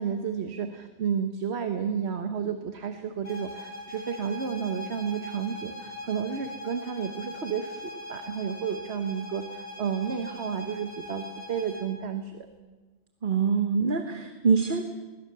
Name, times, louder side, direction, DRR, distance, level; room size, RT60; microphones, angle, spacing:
voice 1, 0.0-12.5, right 7 dB, 75° right, 7 dB, 1.4 m, -31 dB
sound 1, 3.2-11.9, left 1 dB, 90° left, 3.8 m, -41 dB
voice 2, 13.2-14.8, right 5 dB, 50° right, 6 dB, 1.3 m, -24 dB
21.5 x 20.5 x 6.7 m, 1.3 s
omnidirectional pair, 1.1 m